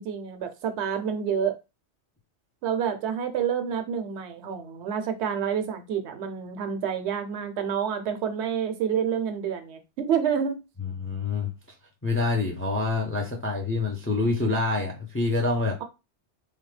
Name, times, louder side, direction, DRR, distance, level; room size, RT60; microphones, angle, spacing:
voice 1, 0.0-1.6 2.6-10.6, right 7 dB, 75° right, 0.8 m, -28 dB
voice 2, 10.8-11.5 12.0-15.8, left 3 dB, 15° left, 0.4 m, -26 dB
3.2 x 2.2 x 3.2 m
omnidirectional pair, 1.2 m